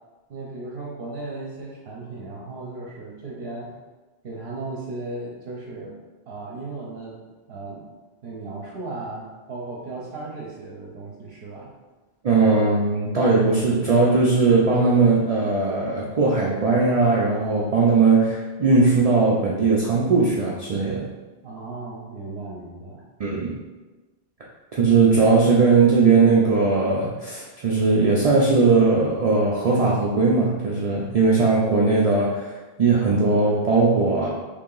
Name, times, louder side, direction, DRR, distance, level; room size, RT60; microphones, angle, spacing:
voice 1, 0.3-3.7 4.2-6.0 6.3-7.2 7.5-7.8 8.2-11.7 21.4-23.0, right 2 dB, 65° right, -4 dB, 0.9 m, -36 dB
voice 2, 12.2-21.1 23.2-23.5 24.7-34.3, right 4 dB, 50° right, -4 dB, 0.5 m, -19 dB
3.2 x 2.8 x 3.8 m, 1.2 s
omnidirectional pair, 1.1 m